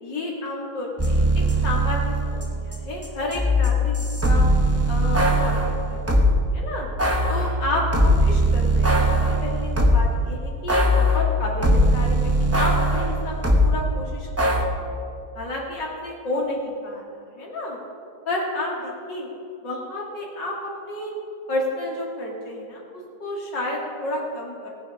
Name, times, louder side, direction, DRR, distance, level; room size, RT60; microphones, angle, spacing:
voice 1, 0.0-4.5 4.9-6.0 6.5-6.9 7.3-12.3 12.6-15.0 15.3-17.0 17.3-17.8 18.3-19.3 19.6-21.1 21.5-24.7, left 1 dB, 75° left, -3 dB, 3.0 m, -31 dB
sound 1, 1.0-6.4 7.0-10.2 10.7-13.7 14.4-14.6, equal, 15° right, 0.6 m, -20 dB
18.5 x 7.5 x 5.6 m, 2.5 s
omnidirectional pair, 1.9 m